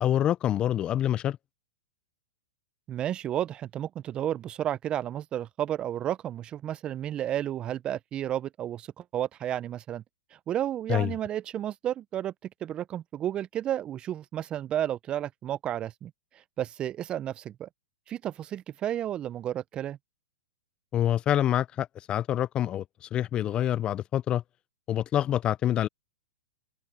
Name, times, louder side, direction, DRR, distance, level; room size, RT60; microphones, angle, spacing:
voice 1, 0.0-1.4 10.9-11.1 20.9-24.4 24.9-25.9, left 11 dB, 25° left, 0.4 m, -26 dB
voice 2, 2.9-10.0 10.5-12.3 12.6-17.7 18.1-20.0, right 11 dB, 25° right, 0.6 m, -32 dB
hypercardioid pair, 120°, 4 cm